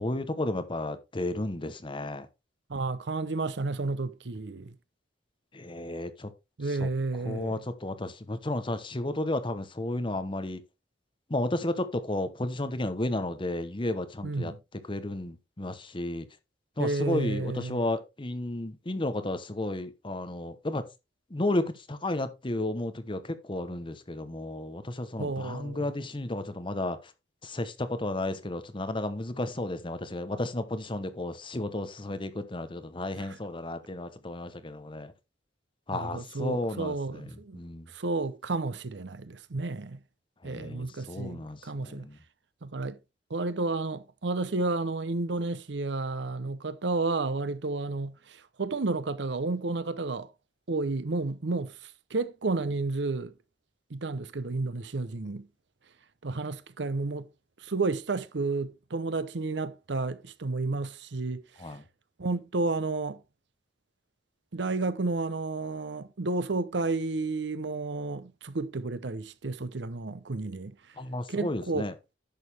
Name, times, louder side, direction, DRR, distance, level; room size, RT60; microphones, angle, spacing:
voice 1, 0.0-2.3 5.5-6.3 6.8-6.9 7.2-10.6 11.3-14.5 14.9-16.3 16.8-20.8 21.3-27.0 27.4-35.1 35.9-37.2 37.5-37.9 40.4-42.2 61.6-61.8 71.0-71.9, left 1 dB, 30° left, 1.0 m, -33 dB
voice 2, 2.7-4.7 6.6-7.6 14.2-14.6 16.8-17.8 25.2-25.9 33.2-33.4 35.9-37.6 37.9-40.0 40.4-42.1 42.6-43.0 43.3-50.3 50.7-53.3 53.9-55.5 56.2-57.3 57.6-61.4 62.2-63.2 64.5-70.7 71.3-71.9, right 3 dB, 70° right, 0.8 m, -31 dB
10.5 x 6.6 x 3.4 m
head